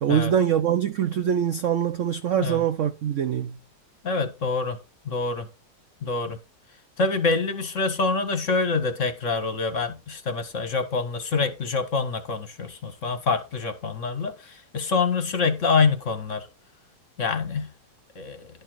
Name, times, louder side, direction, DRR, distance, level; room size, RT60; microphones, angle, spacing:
voice 1, 0.0-3.6, right 9 dB, 70° right, 0.7 m, -23 dB
voice 2, 4.0-4.8 5.1-5.5 6.0-6.4 7.0-16.5 17.2-17.7 18.2-18.5, left 4 dB, 50° left, 1.0 m, -26 dB
11.5 x 4.5 x 6.0 m
omnidirectional pair, 2.0 m